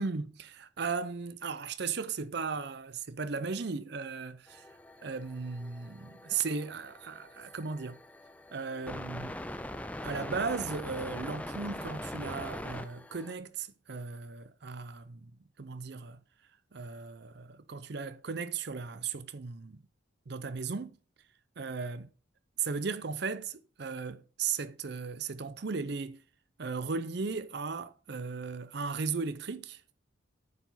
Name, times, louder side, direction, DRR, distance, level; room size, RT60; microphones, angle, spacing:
voice 1, 0.0-4.6 5.0-8.0 8.5-9.4 10.0-15.3 15.6-16.2 16.7-19.8 20.3-21.0 21.6-22.1 22.6-26.2 26.6-29.8, right 5 dB, 55° right, 0.6 m, -36 dB
sound 1, 4.5-13.3, left 1 dB, 5° left, 0.4 m, -42 dB
9.5 x 4.8 x 4.0 m
head